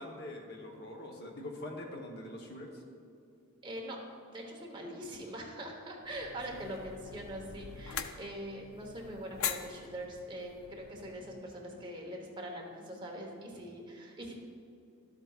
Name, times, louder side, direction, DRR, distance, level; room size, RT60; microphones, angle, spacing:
voice 1, 0.0-2.8 13.5-13.6, left 1 dB, 45° left, 1 dB, 0.9 m, -44 dB
voice 2, 3.6-4.0 4.3-14.4, right 1 dB, 20° right, -1 dB, 1.0 m, -43 dB
sound 1, 6.0-11.4, left 8 dB, 70° left, 0.4 m, -43 dB
12.5 x 7.9 x 2.4 m, 2.5 s
head